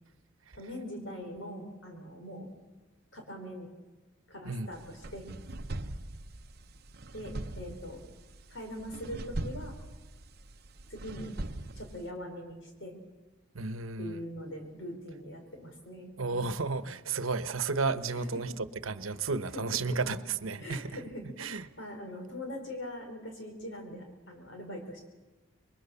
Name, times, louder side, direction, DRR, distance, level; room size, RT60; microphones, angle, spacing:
voice 1, 0.5-2.5 3.1-3.7 4.3-5.3 7.1-8.0 8.5-9.7 10.9-11.3 11.7-13.0 14.0-16.1 18.1-18.4 19.0-19.1 19.5-20.0 20.6-25.1, equal, 65° left, 4.5 m, -42 dB
sound 1, 4.7-12.1, right 1 dB, 50° right, 0.9 m, -41 dB
voice 2, 13.5-14.2 16.2-21.7, right 4 dB, 85° right, 1.0 m, -33 dB
26.5 x 22.0 x 7.0 m
head